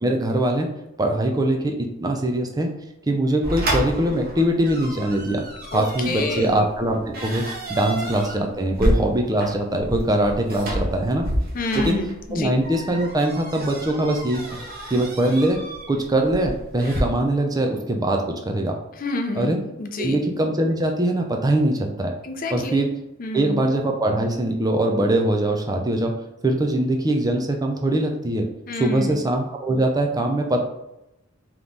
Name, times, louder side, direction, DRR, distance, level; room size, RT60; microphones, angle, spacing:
voice 1, 0.0-0.7 1.0-2.7 3.1-5.4 5.7-11.3 11.8-12.0 12.3-14.6 14.9-15.6 15.9-18.8 19.4-19.6 20.0-22.1 22.5-22.9 23.3-26.2 26.4-28.5 28.8-30.6, right 1 dB, 20° right, 3 dB, 0.5 m, -22 dB
sound 1, 3.4-17.0, equal, 50° right, 1.1 m, -30 dB
voice 2, 5.7-6.6 7.9-8.1 11.5-12.5 18.9-20.2 22.2-22.9 23.2-23.6 28.7-29.2, left 2 dB, 45° left, 5 dB, 0.5 m, -28 dB
3.6 x 3.0 x 3.8 m, 0.88 s
head